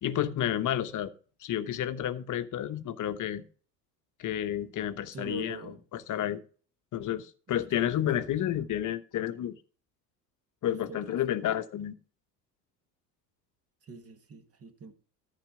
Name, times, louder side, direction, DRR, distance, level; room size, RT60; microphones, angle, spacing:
voice 1, 0.0-1.1 1.4-3.4 4.2-6.4 6.9-9.5 10.6-11.9, left 11 dB, 40° left, 1.0 m, -31 dB
voice 2, 5.1-5.8 7.5-8.3 10.9-11.0 13.8-14.9, right 3 dB, 30° right, 1.6 m, -44 dB
13.5 x 4.8 x 5.0 m
hypercardioid pair, 70°, 49 cm